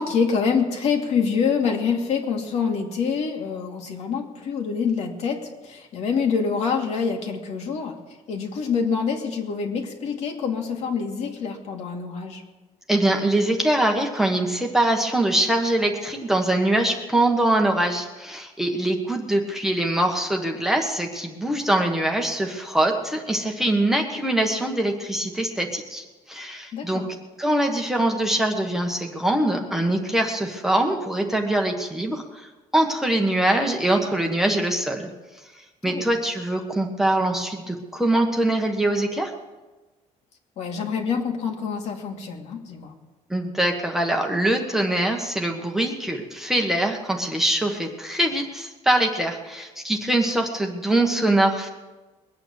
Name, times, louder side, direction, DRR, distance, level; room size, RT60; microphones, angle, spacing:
voice 1, 0.0-7.9 8.3-12.4 26.7-27.1 35.8-36.1 40.6-42.9, left 6 dB, 55° left, 2 dB, 2.4 m, -26 dB
voice 2, 12.9-27.0 27.4-35.1 35.8-39.3 43.3-51.7, right 1 dB, 5° right, 1 dB, 1.3 m, -23 dB
21.5 x 8.9 x 7.2 m, 1.2 s
cardioid pair, 160°, 13 cm